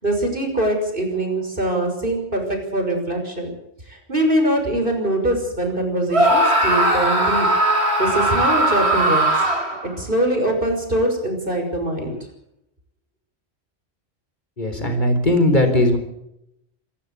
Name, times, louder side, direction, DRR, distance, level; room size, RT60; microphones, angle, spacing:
voice 1, 0.0-3.5 3.9-7.5 8.0-9.4 9.8-12.1, right 1 dB, 55° right, 4 dB, 6.2 m, -23 dB
Screaming, 6.1-9.9, right 1 dB, 80° right, 4.5 m, -18 dB
voice 2, 14.6-16.0, left 1 dB, 45° left, 6 dB, 4.3 m, -18 dB
27.0 x 12.5 x 8.3 m, 0.80 s
omnidirectional pair, 1.1 m